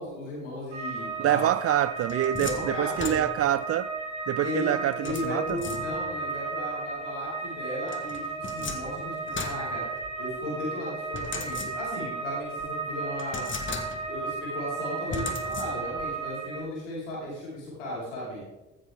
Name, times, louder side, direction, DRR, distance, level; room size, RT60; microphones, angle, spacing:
voice 1, 0.0-1.5 2.4-3.2 4.4-4.7 5.0-9.8 10.2-13.4 14.0-18.4, left 1 dB, 80° left, 4.9 m, -35 dB
sound 1, 0.7-16.6, right 4 dB, 80° right, 3.4 m, -34 dB
voice 2, 1.2-3.9 4.3-5.6, right 12 dB, 40° right, 0.5 m, -26 dB
sound 2, 1.7-3.7 5.1-6.3 7.9-10.4 11.1-12.1 12.6-12.7 13.2-14.3 15.1-16.1, left 4 dB, 35° left, 1.7 m, -38 dB
14.5 x 13.0 x 3.7 m
figure-of-eight pair, 40°, 36 cm